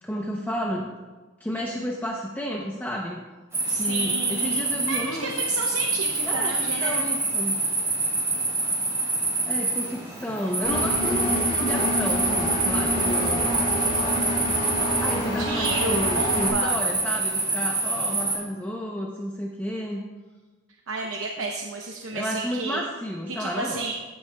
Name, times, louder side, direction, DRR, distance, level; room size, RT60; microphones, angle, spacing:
voice 1, 0.0-0.9 1.4-3.2 3.7-5.3 6.2-6.5 6.8-7.6 9.0-9.2 9.5-13.9 15.0-20.0 22.1-23.8, equal, 10° left, -1 dB, 0.7 m, -31 dB
sound 1, 3.5-18.3, right 3 dB, 15° right, 2.8 m, -26 dB
voice 2, 3.7-7.0 15.4-16.8 20.9-22.8 23.3-23.9, right 3 dB, 80° right, 1 dB, 0.8 m, -31 dB
Engine, 10.6-16.5, equal, 40° left, 2.1 m, -27 dB
14.5 x 8.7 x 2.3 m, 1.3 s
head